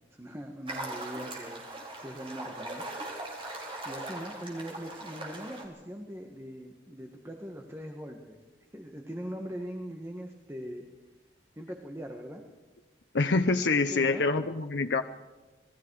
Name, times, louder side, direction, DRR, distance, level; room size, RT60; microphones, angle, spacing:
voice 1, 0.1-1.6 2.0-2.8 3.8-8.4 8.7-10.8 11.5-12.4 13.9-14.2, equal, 15° right, 3 dB, 1.6 m, -41 dB
sound 1, 0.7-5.6, right 2 dB, 30° right, 4.2 m, -40 dB
voice 2, 13.1-15.0, left 3 dB, 75° left, 7 dB, 0.8 m, -26 dB
27.0 x 20.0 x 4.8 m, 1.2 s
head